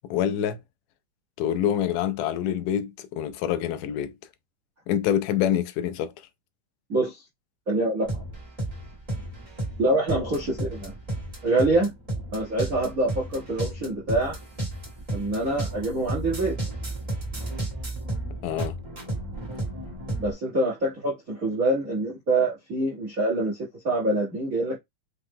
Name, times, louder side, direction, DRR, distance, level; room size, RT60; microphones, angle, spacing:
voice 1, 0.1-0.6 1.4-4.1 4.9-6.1 18.4-18.8, left 10 dB, 80° left, 2.0 m, -26 dB
voice 2, 6.9-7.2 7.7-8.2 9.8-10.9 11.4-11.9 12.3-14.4 15.1-16.6 20.2-24.8, right 2 dB, 70° right, 0.8 m, -25 dB
sound 1, 8.1-20.3, right 1 dB, 50° right, 0.4 m, -33 dB
5.5 x 2.1 x 3.5 m
omnidirectional pair, 3.8 m